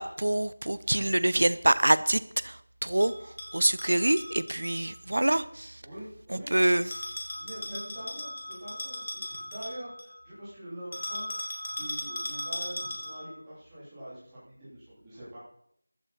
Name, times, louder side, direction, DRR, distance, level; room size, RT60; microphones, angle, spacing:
voice 1, 0.0-3.1 3.5-5.8 6.3-6.9, right 1 dB, 55° right, 16 dB, 0.8 m, -25 dB
Bell, 3.0-4.7 6.9-10.1 10.9-13.3, left 1 dB, 20° left, 2.0 m, -37 dB
voice 2, 5.8-6.6 7.3-11.3 11.6-15.4, right 1 dB, 5° right, -12 dB, 3.3 m, -44 dB
15.0 x 12.5 x 4.3 m, 0.69 s
figure-of-eight pair, 180°, 0 cm